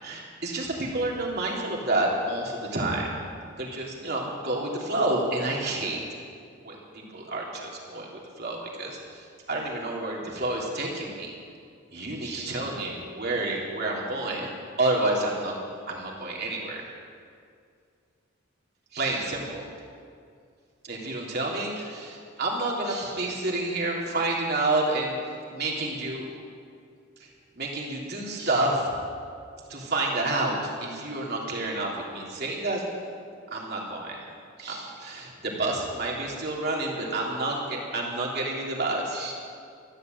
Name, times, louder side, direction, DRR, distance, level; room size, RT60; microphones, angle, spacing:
voice 1, 0.0-3.1 3.6-6.0 6.6-8.1 8.4-11.3 11.9-15.5 15.9-16.9 18.9-19.7 20.8-25.2 25.5-26.3 27.2-27.3 27.5-28.9 29.7-32.8 33.5-34.2 34.6-39.3, right 2 dB, 55° right, -2 dB, 3.0 m, -29 dB
13.5 x 11.5 x 7.9 m, 2.3 s
head